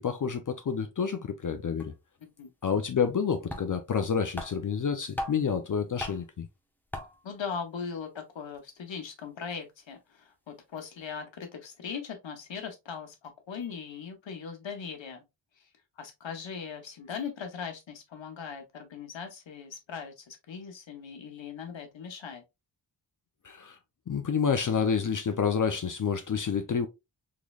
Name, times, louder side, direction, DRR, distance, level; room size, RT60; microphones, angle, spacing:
voice 1, 0.0-1.9 2.6-6.5 23.4-23.8 24.1-26.9, left 6 dB, 45° left, 0.5 m, -29 dB
sound 1, 1.5-1.6 1.8-1.9 3.1-3.2 3.5-4.0 4.3-5.6 6.0-6.4 6.9-7.3, left 1 dB, 5° left, 0.6 m, -38 dB
voice 2, 7.2-15.2 16.0-22.4, left 6 dB, 85° left, 1.0 m, -39 dB
3.8 x 3.1 x 2.3 m
wide cardioid pair, 85°, 44 cm